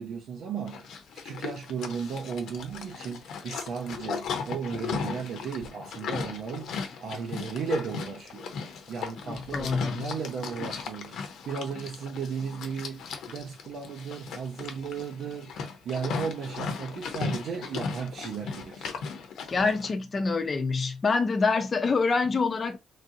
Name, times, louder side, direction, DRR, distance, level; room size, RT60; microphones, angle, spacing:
voice 1, 0.0-8.5 8.9-18.9 20.2-20.3, right 6 dB, 70° right, 0.7 m, -35 dB
Livestock farm animals working animals, 0.7-19.9, left 5 dB, 75° left, 0.7 m, -37 dB
voice 2, 9.3-10.1 19.5-22.8, left 4 dB, 35° left, 0.6 m, -26 dB
3.3 x 2.5 x 2.7 m
cardioid pair, 90°, 0 cm